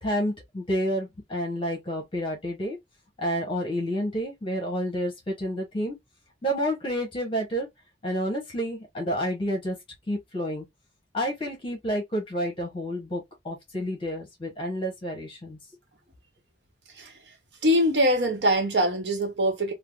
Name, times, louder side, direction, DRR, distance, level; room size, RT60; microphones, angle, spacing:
voice 1, 0.0-2.8 3.2-6.0 6.4-7.7 8.0-9.8 10.1-10.6 11.1-15.6, equal, 30° left, 1.0 m, -29 dB
voice 2, 16.9-17.3 17.6-19.7, equal, 75° right, 0.9 m, -23 dB
3.4 x 2.1 x 2.3 m
head